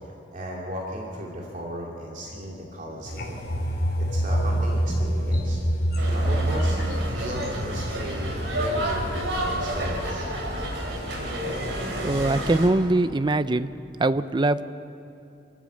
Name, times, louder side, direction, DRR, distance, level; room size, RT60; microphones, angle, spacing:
voice 1, 0.3-3.5 3.9-5.6 6.1-10.3, equal, 45° right, -2 dB, 2.8 m, -35 dB
sound 1, 3.0-10.9 11.3-11.5, equal, 60° left, 2.9 m, -27 dB
sound 2, 6.0-12.7, equal, 80° right, 3.4 m, -30 dB
voice 2, 12.0-13.7 14.0-14.6, right 2 dB, 25° right, 13 dB, 0.5 m, -22 dB
27.5 x 14.0 x 7.7 m, 2.7 s
head